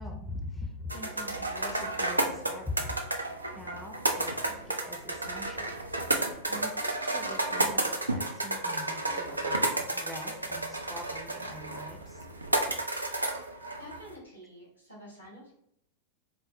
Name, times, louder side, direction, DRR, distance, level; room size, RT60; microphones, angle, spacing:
voice 1, 0.0-3.0 3.6-5.8 6.5-12.3, left 1 dB, ahead, 1 dB, 0.5 m, -43 dB
sound 1, 0.9-14.1, right 2 dB, 80° right, 0.3 m, -32 dB
voice 2, 13.8-15.5, equal, 90° left, -5 dB, 1.5 m, -48 dB
4.1 x 2.0 x 2.5 m, 0.74 s
figure-of-eight pair, 90°, 0 cm